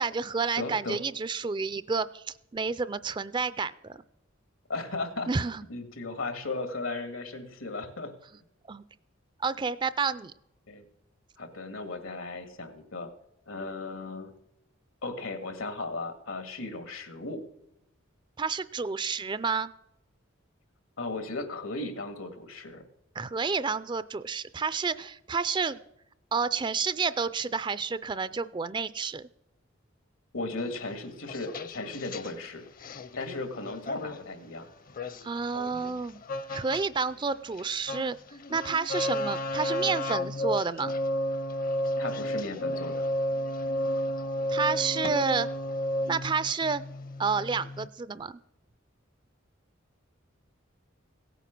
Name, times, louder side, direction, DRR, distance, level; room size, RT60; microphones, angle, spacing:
voice 1, 0.0-2.2 2.5-4.0 5.3-5.6 8.7-8.8 9.4-10.3 18.4-19.7 23.2-25.8 26.3-29.3 35.2-36.2 36.5-38.2 38.5-40.9 44.5-45.5 46.1-46.8 47.2-48.4, right 5 dB, 20° right, 16 dB, 0.4 m, -30 dB
voice 2, 0.6-1.0 4.7-5.3 5.7-8.1 10.7-10.9 11.4-13.1 13.5-14.3 15.0-17.5 21.0-22.8 30.3-32.6 33.1-34.7 42.0-43.1, left 2 dB, 85° left, 9 dB, 2.0 m, -36 dB
sound 1, 30.6-32.3 32.8-34.2 34.9-36.9 37.1-47.9, left 1 dB, 45° left, 0.7 m, -32 dB
16.5 x 9.1 x 6.0 m, 0.84 s
head